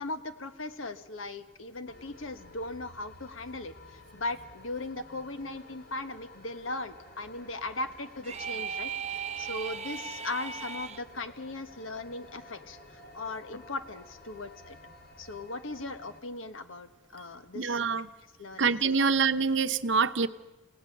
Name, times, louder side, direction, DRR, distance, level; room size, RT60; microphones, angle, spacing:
voice 1, 0.0-12.8 13.1-14.8 15.2-17.8 18.4-19.1, left 2 dB, 85° left, 10 dB, 1.4 m, -38 dB
sound 1, 1.9-16.2, left 2 dB, 45° left, 2.7 m, -53 dB
sound 2, 8.2-11.0, right 7 dB, 35° right, 0.8 m, -37 dB
voice 2, 17.5-18.1 18.6-20.3, right 5 dB, 65° right, 11 dB, 0.8 m, -25 dB
29.5 x 17.5 x 6.6 m, 1.1 s
head